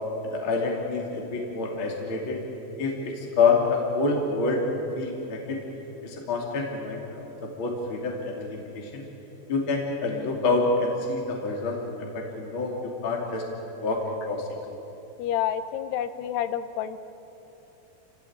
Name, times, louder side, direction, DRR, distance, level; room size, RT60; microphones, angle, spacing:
voice 1, 0.2-2.4 2.8-4.6 4.9-5.6 6.0-9.0 9.5-13.4 13.8-14.5, left 3 dB, 35° left, -1 dB, 3.0 m, -27 dB
voice 2, 15.2-17.0, left 10 dB, 80° left, 11 dB, 2.9 m, -29 dB
28.5 x 17.0 x 8.7 m, 3.0 s
omnidirectional pair, 4.8 m